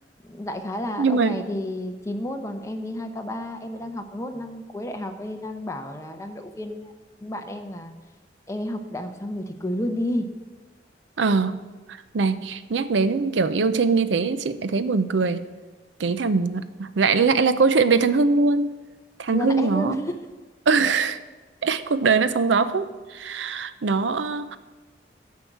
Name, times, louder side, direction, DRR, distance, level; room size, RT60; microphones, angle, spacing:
voice 1, 0.2-6.9 7.2-7.9 8.5-10.3 19.3-20.2, left 1 dB, 15° left, 5 dB, 0.8 m, -31 dB
voice 2, 1.0-1.4 11.2-11.6 11.9-15.5 16.0-18.7 19.2-19.9 20.7-21.2 21.6-24.6, right 4 dB, 85° right, 13 dB, 0.5 m, -22 dB
11.5 x 4.8 x 7.8 m, 1.3 s
head